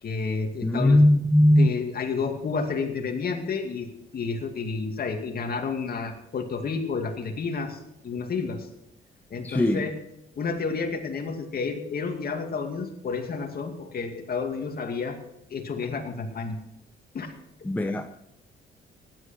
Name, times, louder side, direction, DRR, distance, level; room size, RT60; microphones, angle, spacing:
voice 1, 0.0-1.0 1.6-3.9 4.1-8.7 9.3-9.9 10.4-15.2 15.5-16.6 17.1-17.3, left 5 dB, 50° left, 4 dB, 2.4 m, -30 dB
voice 2, 0.6-1.8 9.4-9.9 17.6-18.1, left 1 dB, 10° left, 6 dB, 0.9 m, -19 dB
16.0 x 11.5 x 4.5 m, 0.83 s
cardioid pair, 90°, 20 cm